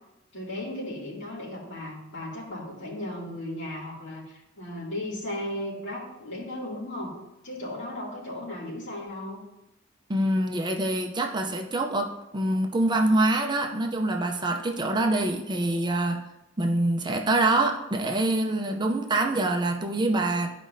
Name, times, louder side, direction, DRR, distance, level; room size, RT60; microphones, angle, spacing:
voice 1, 0.3-7.1 7.4-9.4, left 1 dB, 65° left, -6 dB, 2.6 m, -36 dB
voice 2, 10.1-16.2 16.6-20.5, right 2 dB, 20° right, 3 dB, 0.6 m, -25 dB
12.5 x 5.0 x 2.7 m, 0.93 s
head